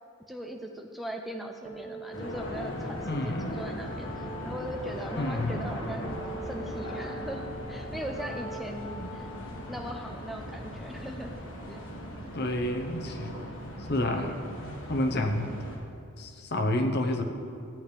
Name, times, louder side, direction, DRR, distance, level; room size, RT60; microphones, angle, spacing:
voice 1, 0.3-6.2 6.5-9.3 9.7-11.3 11.7-11.8, equal, ahead, 2 dB, 0.4 m, -39 dB
sound 1, 1.6-11.6, equal, 75° right, 2.1 m, -45 dB
sound 2, 2.1-15.8, equal, 65° left, 1.6 m, -39 dB
voice 2, 3.1-3.6 5.2-5.6 9.0-9.1 12.3-13.3 13.8-15.5 16.2-17.2, left 1 dB, 50° left, 4 dB, 0.8 m, -29 dB
13.5 x 8.4 x 3.3 m, 2.5 s
head